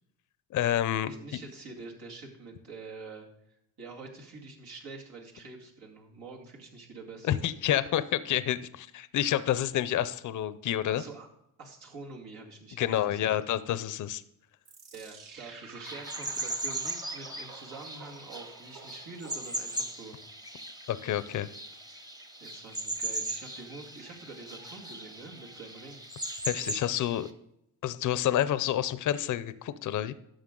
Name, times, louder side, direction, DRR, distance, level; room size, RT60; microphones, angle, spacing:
voice 1, 0.5-1.1 7.2-11.0 12.8-14.2 20.9-21.5 26.4-27.3 27.8-30.1, left 11 dB, 55° left, 14 dB, 0.6 m, -29 dB
voice 2, 1.1-7.4 10.9-11.3 11.6-13.3 14.9-20.2 22.4-26.0, right 3 dB, 75° right, -1 dB, 2.3 m, -46 dB
sound 1, 14.7-20.0, right 4 dB, 60° right, 1.7 m, -50 dB
sound 2, 15.8-27.3, right 1 dB, 10° right, 0.9 m, -38 dB
11.5 x 7.0 x 3.8 m, 0.79 s
cardioid pair, 95°, 37 cm